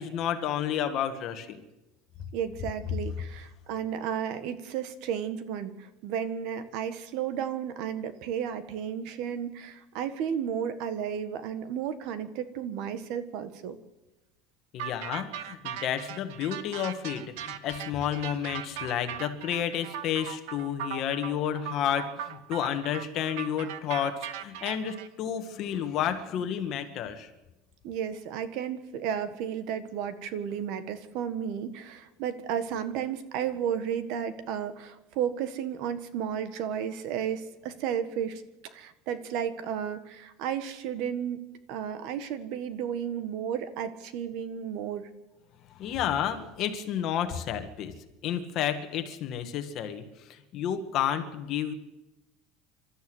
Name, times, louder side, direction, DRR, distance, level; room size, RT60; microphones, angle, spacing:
voice 1, 0.0-1.6 14.7-27.3 45.8-47.9 48.2-50.0 50.3-51.7, left 9 dB, 40° left, 7 dB, 1.9 m, -31 dB
voice 2, 2.3-13.8 27.8-38.4 38.7-41.4 41.7-45.1, right 8 dB, 55° right, 12 dB, 1.6 m, -33 dB
sound 1, 14.8-25.1, right 10 dB, 75° right, 1.4 m, -39 dB
27.0 x 13.0 x 8.1 m, 1.0 s
cardioid pair, 170°, 0 cm